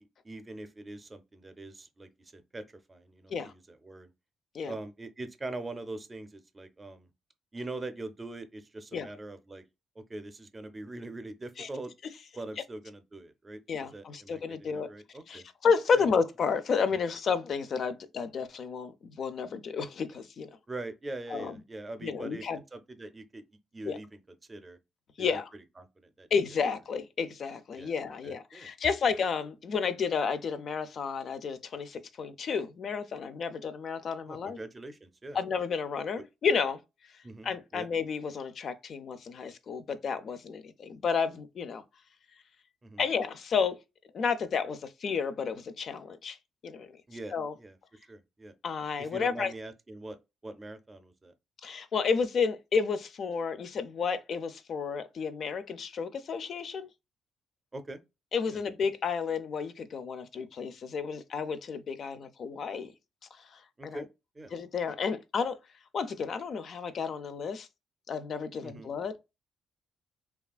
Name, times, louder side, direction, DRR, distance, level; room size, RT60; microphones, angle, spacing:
voice 1, 0.0-2.6 2.9-4.1 4.7-7.1 7.5-9.6 10.0-11.9 12.4-13.6 13.9-15.4 15.9-16.1 16.9-17.0 20.7-22.4 22.7-23.4 23.7-24.2 24.5-24.8 25.2-26.3 27.8-27.9 28.2-28.7 34.3-35.4 37.2-37.9 42.8-43.0 47.1-48.5 49.0-50.2 50.4-51.3 57.7-58.0 58.5-58.6 63.8-64.1 64.3-64.5 68.6-68.9, right 2 dB, 25° right, 0.5 m, -43 dB
voice 2, 13.7-14.9 15.3-20.5 21.3-21.5 22.0-22.6 23.8-24.0 25.2-25.5 26.3-34.6 35.3-36.8 37.4-41.8 43.0-43.8 44.1-46.4 46.6-46.9 47.3-47.5 48.6-49.5 51.6-56.9 58.3-62.9 63.8-64.0 64.5-65.6 65.9-67.7 68.1-69.2, left 5 dB, 55° left, 0.4 m, -31 dB
2.8 x 2.3 x 2.3 m
cardioid pair, 90°, 0 cm